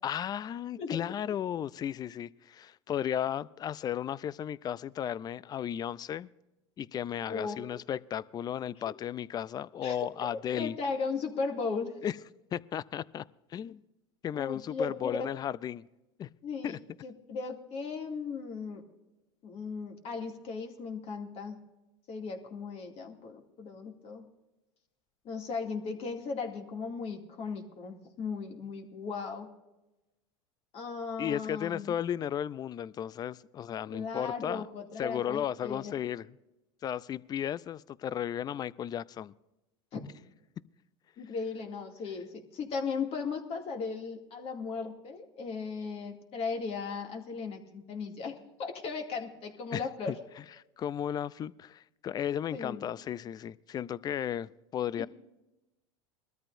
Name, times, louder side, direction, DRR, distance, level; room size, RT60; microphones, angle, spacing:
voice 1, 0.0-6.3 6.8-10.8 12.0-12.1 12.5-13.2 13.5-13.8 14.2-15.8 16.2-16.3 16.6-16.8 31.2-34.6 35.0-36.3 36.8-39.3 49.7-50.1 50.8-55.1, left 10 dB, 25° left, 21 dB, 0.4 m, -34 dB
voice 2, 0.8-1.3 7.3-7.6 8.9-9.0 9.8-11.9 14.3-15.2 16.4-16.8 17.0-18.8 19.4-21.6 22.1-24.3 25.2-29.5 30.7-31.9 33.9-35.9 39.9-40.0 41.2-50.2 52.5-52.9 55.0-55.1, left 5 dB, 45° left, 3 dB, 2.4 m, -37 dB
22.0 x 13.5 x 2.6 m, 0.98 s
supercardioid pair, 105°, 15 cm